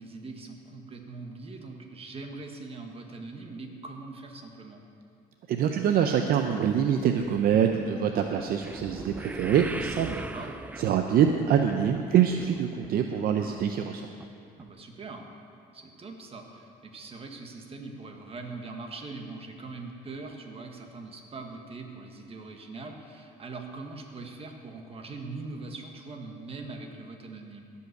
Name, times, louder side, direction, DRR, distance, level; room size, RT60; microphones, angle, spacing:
voice 1, 0.0-4.8 10.1-10.5 14.6-15.3 15.7-27.6, right 3 dB, 35° right, 3 dB, 1.5 m, -42 dB
voice 2, 5.5-10.2 10.8-14.1, right 8 dB, 60° right, 5 dB, 0.6 m, -25 dB
sound 1, 6.5-12.9 13.2-13.6 14.2-14.3 14.6-14.7, right 2 dB, 10° right, 0.3 m, -41 dB
16.5 x 5.6 x 6.6 m, 2.4 s
cardioid pair, 110°, 17 cm